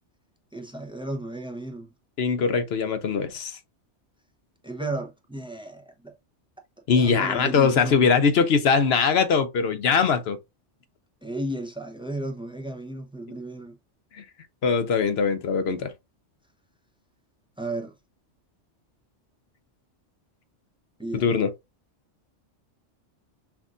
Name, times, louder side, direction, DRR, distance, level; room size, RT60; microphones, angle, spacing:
voice 1, 0.5-1.9 4.6-6.2 6.9-8.1 11.2-13.8 17.6-17.9 21.0-21.3, right 1 dB, 5° right, 0.6 m, -34 dB
voice 2, 2.2-3.6 6.9-10.4 14.1-14.2 14.6-15.9 21.1-21.5, left 5 dB, 60° left, 0.9 m, -22 dB
5.9 x 2.5 x 2.5 m
omnidirectional pair, 1.2 m